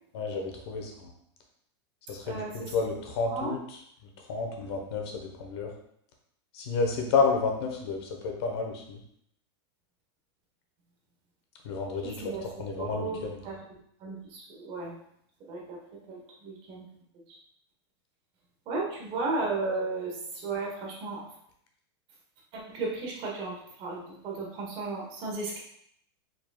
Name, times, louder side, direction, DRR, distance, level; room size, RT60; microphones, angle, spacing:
voice 1, 0.1-1.1 2.1-3.6 4.3-5.7 6.5-9.0 11.6-12.3 12.6-13.4, left 4 dB, 65° left, 2 dB, 1.1 m, -30 dB
voice 2, 2.2-2.7 3.3-3.5 12.2-12.4 12.8-14.9 15.5-15.8 16.1-16.9 18.7-21.3 22.5-25.6, right 3 dB, 40° right, -2 dB, 1.3 m, -34 dB
4.8 x 4.0 x 2.4 m, 0.71 s
supercardioid pair, 145°, 14 cm